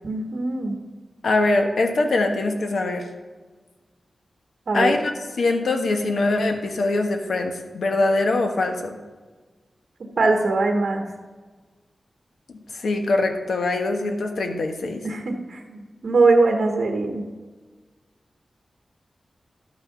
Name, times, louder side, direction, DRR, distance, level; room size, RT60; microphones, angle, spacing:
voice 1, 0.0-0.8 4.7-4.9 10.2-11.1 15.0-17.2, right 3 dB, 65° right, 3 dB, 1.3 m, -21 dB
voice 2, 1.2-3.1 4.7-5.1 5.4-9.0 12.5-15.0, left 2 dB, 75° left, 4 dB, 1.3 m, -23 dB
12.0 x 6.2 x 5.8 m, 1.4 s
wide cardioid pair, 115°, 0 cm